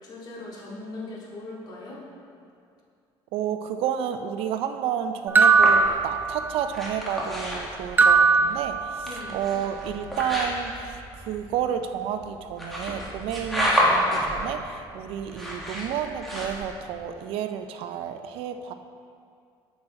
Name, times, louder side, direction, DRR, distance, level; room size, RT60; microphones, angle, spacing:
voice 1, 0.0-2.0 9.0-9.5, left 2 dB, 45° left, -4 dB, 2.2 m, -39 dB
voice 2, 3.3-18.7, right 9 dB, 75° right, 7 dB, 0.5 m, -31 dB
sound 1, 5.4-6.8 8.0-9.4, right 4 dB, 20° right, 0.6 m, -20 dB
sound 2, 5.5-17.0, equal, ahead, 1.8 m, -30 dB
9.4 x 6.4 x 4.2 m, 2.3 s
cardioid pair, 120°, 10 cm